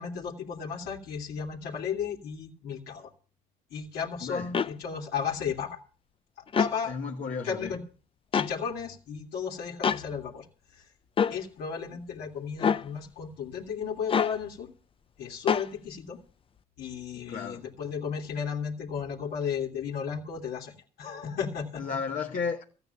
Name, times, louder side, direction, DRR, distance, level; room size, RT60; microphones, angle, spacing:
voice 1, 0.0-3.1 3.7-5.8 6.6-6.9 7.4-7.8 8.3-10.4 10.7-10.8 11.3-14.7 15.2-16.2 16.8-21.8, left 7 dB, 75° left, 2.7 m, -34 dB
voice 2, 4.2-4.5 6.9-7.7 11.9-12.0 17.2-17.6 21.8-22.6, left 5 dB, 50° left, 1.5 m, -33 dB
sound 1, 4.5-4.7 6.5-6.8 8.3-8.5 9.8-10.0 11.2-11.4 12.6-12.9 14.1-14.4 15.5-15.7, left 7 dB, 30° left, 0.7 m, -25 dB
14.0 x 9.4 x 6.9 m
cardioid pair, 110°, 17 cm